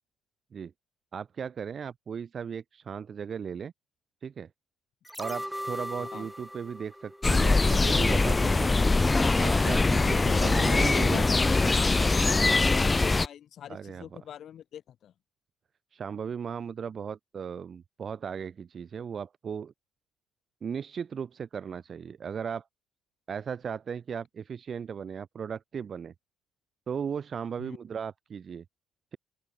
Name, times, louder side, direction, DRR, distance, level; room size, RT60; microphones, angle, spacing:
voice 1, 1.1-3.7 4.2-4.5 5.2-8.7 9.4-11.4 13.7-14.1 15.9-19.7 20.6-22.6 23.3-26.1 26.9-28.6, right 7 dB, 45° right, 1.6 m, -36 dB
sound 1, 5.0-8.2 8.5-8.6, equal, ahead, 2.4 m, -39 dB
sound 2, 7.2-13.3, left 3 dB, 20° left, 0.4 m, -23 dB
voice 2, 9.9-15.1 27.6-27.8, left 10 dB, 55° left, 3.0 m, -42 dB
open air
hypercardioid pair, 50°, 0 cm